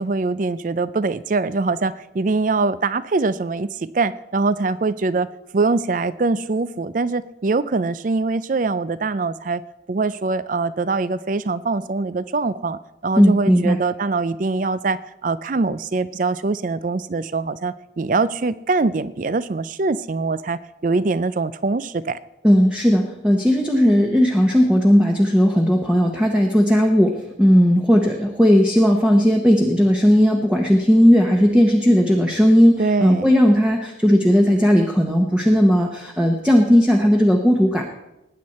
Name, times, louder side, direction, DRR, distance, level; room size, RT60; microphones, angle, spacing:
voice 1, 0.0-5.3 5.5-9.6 9.9-22.2 32.8-33.3, right 3 dB, 45° right, 16 dB, 0.4 m, -23 dB
voice 2, 13.2-13.8 22.4-37.9, equal, 5° right, 1 dB, 1.0 m, -16 dB
19.5 x 9.5 x 4.2 m, 0.90 s
head